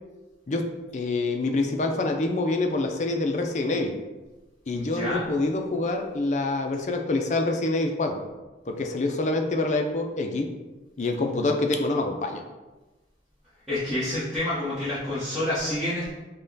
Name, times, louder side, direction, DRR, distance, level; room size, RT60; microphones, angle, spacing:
voice 1, 0.5-3.9 4.7-8.2 8.7-10.5 11.0-12.4, left 2 dB, 40° left, 4 dB, 0.4 m, -26 dB
voice 2, 4.7-5.3 13.7-16.1, left 1 dB, ahead, -14 dB, 1.1 m, -28 dB
5.4 x 2.2 x 3.9 m, 1.2 s
head